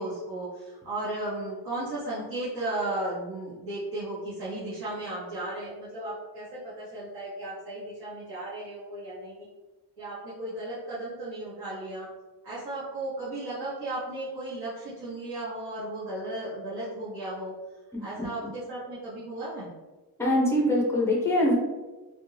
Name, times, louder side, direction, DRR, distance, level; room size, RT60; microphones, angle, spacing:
voice 1, 0.0-9.4 10.0-12.1 12.4-17.5 18.0-19.7, right 1 dB, 70° right, -10 dB, 0.9 m, -35 dB
voice 2, 20.2-21.6, left 1 dB, 5° left, -4 dB, 0.5 m, -23 dB
2.4 x 2.2 x 3.0 m, 1.2 s
cardioid pair, 160°, 40 cm